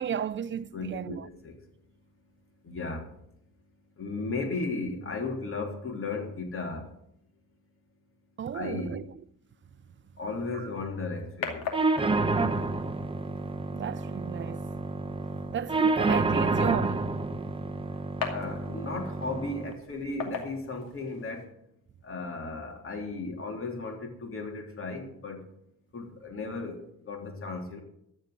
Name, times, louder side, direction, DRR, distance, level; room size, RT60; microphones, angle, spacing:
voice 1, 0.0-1.3 8.4-9.1 10.5-10.7 13.7-14.7 15.5-17.2, right 8 dB, 35° right, 0.6 m, -34 dB
voice 2, 0.7-1.5 2.6-3.1 4.0-6.9 8.5-9.0 10.2-11.6 18.3-21.4 22.0-25.4 25.9-27.8, left 3 dB, 40° left, 3.4 m, -35 dB
sound 1, 10.4-21.4, left 6 dB, 85° left, 2.6 m, -42 dB
sound 2, 11.7-19.7, right 3 dB, 15° right, 0.9 m, -29 dB
14.5 x 5.4 x 9.5 m
cardioid pair, 95°, 34 cm